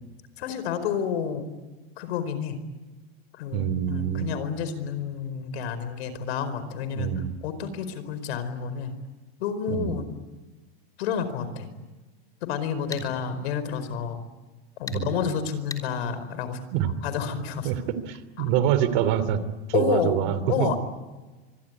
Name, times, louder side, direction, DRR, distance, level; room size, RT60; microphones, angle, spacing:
voice 1, 0.4-1.5 2.0-2.6 3.3-9.0 9.4-10.1 11.0-11.7 12.4-14.2 14.8-16.6 17.0-17.7 18.4-18.5 19.7-20.2 20.5-20.8, left 7 dB, 80° left, 12 dB, 4.7 m, -30 dB
voice 2, 3.5-4.3 6.9-7.3 9.7-9.9 14.9-15.1 16.7-16.9 17.6-19.4 19.7-20.7, right 10 dB, 55° right, 13 dB, 2.9 m, -25 dB
sound 1, 12.9-13.1 14.9-15.0 15.7-15.9, left 4 dB, 10° left, 3.5 m, -36 dB
25.5 x 21.5 x 9.8 m, 1.2 s
supercardioid pair, 155°, 31 cm